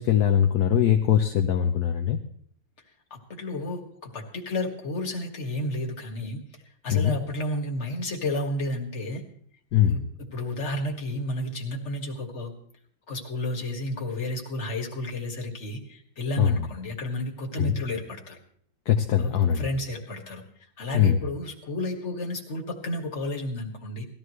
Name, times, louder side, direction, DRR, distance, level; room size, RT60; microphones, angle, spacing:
voice 1, 0.0-2.2 6.9-7.1 9.7-10.0 16.4-16.6 17.6-17.7 18.9-19.7 20.9-21.2, left 9 dB, 60° left, 4 dB, 1.2 m, -21 dB
voice 2, 3.1-6.4 6.8-9.2 9.9-10.0 10.3-12.5 13.1-18.4 19.2-20.4 20.8-24.1, left 1 dB, 35° left, 0 dB, 2.1 m, -32 dB
19.5 x 14.0 x 3.2 m, 0.62 s
omnidirectional pair, 2.3 m